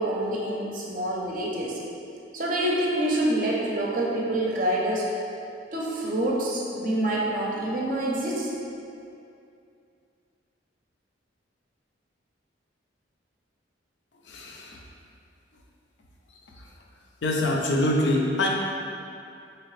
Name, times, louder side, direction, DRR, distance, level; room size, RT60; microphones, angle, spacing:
voice 1, 0.0-1.8 2.3-5.1 5.7-8.5, right 1 dB, 45° right, -3 dB, 0.6 m, -26 dB
voice 2, 14.2-14.8 16.5-16.7 17.2-18.5, left 1 dB, 70° left, -1 dB, 0.5 m, -25 dB
3.8 x 2.9 x 3.1 m, 2.5 s
head